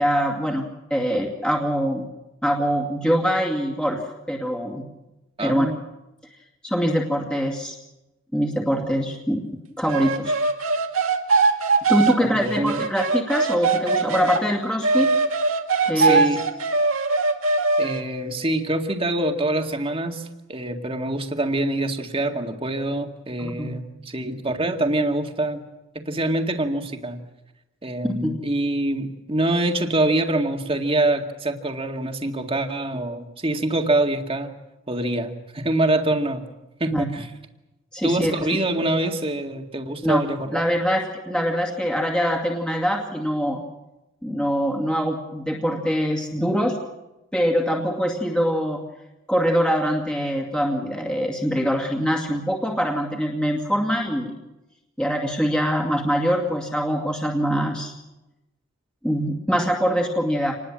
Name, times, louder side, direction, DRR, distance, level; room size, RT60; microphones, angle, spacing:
voice 1, 0.0-2.1 2.4-4.9 5.4-5.7 6.6-7.7 8.3-9.4 9.8-10.3 11.9-15.1 15.9-16.4 23.4-23.7 28.2-28.3 36.9-37.1 37.9-38.3 40.0-40.2 40.5-43.6 44.2-46.8 47.3-48.8 49.3-54.3 55.0-57.9 59.0-60.6, equal, 5° left, 0 dB, 2.3 m, -23 dB
voice 2, 5.4-5.8 12.2-12.8 16.0-16.4 17.8-25.6 26.1-27.2 27.8-34.5 34.9-36.5 36.8-37.3 38.0-40.6, right 1 dB, 25° right, 4 dB, 2.1 m, -25 dB
sound 1, 9.9-14.4 14.8-18.0, right 4 dB, 85° right, 2.2 m, -21 dB
27.5 x 20.5 x 7.5 m, 0.99 s
head